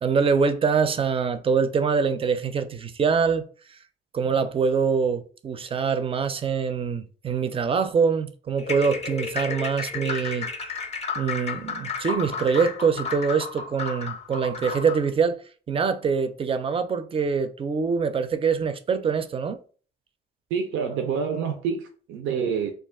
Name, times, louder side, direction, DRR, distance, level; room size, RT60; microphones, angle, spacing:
voice 1, 0.0-3.8 4.1-10.7 11.2-15.4 15.7-19.6, right 5 dB, 30° right, 0.4 m, -24 dB
sound 1, 8.6-15.1, left 4 dB, 35° left, 0.5 m, -32 dB
voice 2, 20.5-22.7, right 6 dB, 85° right, 0.5 m, -27 dB
2.4 x 2.3 x 3.5 m
cardioid pair, 90°, 20 cm